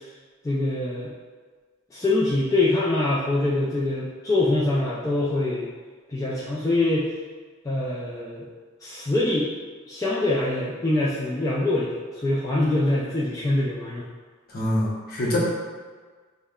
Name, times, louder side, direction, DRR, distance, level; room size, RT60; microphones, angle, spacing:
voice 1, 0.4-1.1 1.9-5.7 6.1-7.1 7.7-8.4 8.8-9.5 9.9-14.0, left 2 dB, 15° left, -7 dB, 0.3 m, -24 dB
voice 2, 14.5-15.4, left 1 dB, 50° left, -5 dB, 0.8 m, -25 dB
5.3 x 2.1 x 2.3 m, 1.5 s
head